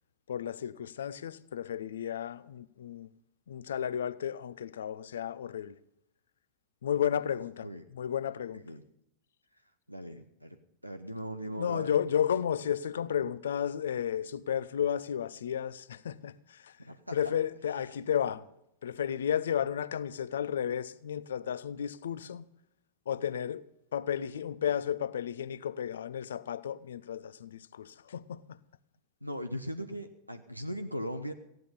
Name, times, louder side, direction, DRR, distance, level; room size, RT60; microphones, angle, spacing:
voice 1, 0.3-3.1 3.5-5.8 6.8-8.6 11.6-16.3 16.6-16.7 17.1-18.5 18.8-22.5 23.1-23.6 23.9-28.4, left 9 dB, 65° left, 0.6 m, -33 dB
voice 2, 9.9-10.6 10.8-11.9 16.8-17.2 29.2-31.3, equal, 90° right, 0.8 m, -39 dB
15.0 x 11.0 x 5.4 m
figure-of-eight pair, 90°, 0 cm